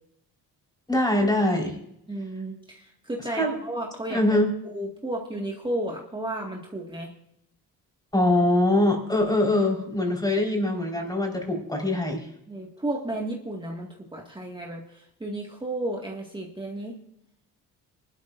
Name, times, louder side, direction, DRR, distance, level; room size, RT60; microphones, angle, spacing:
voice 1, 0.9-1.7 3.3-3.5 4.1-4.5 8.1-12.3, left 1 dB, 10° left, 0 dB, 4.6 m, -23 dB
voice 2, 2.1-4.4 4.6-7.1 12.5-17.0, right 1 dB, 15° right, -1 dB, 2.0 m, -33 dB
24.5 x 12.5 x 2.6 m, 0.78 s
cardioid pair, 90°, 34 cm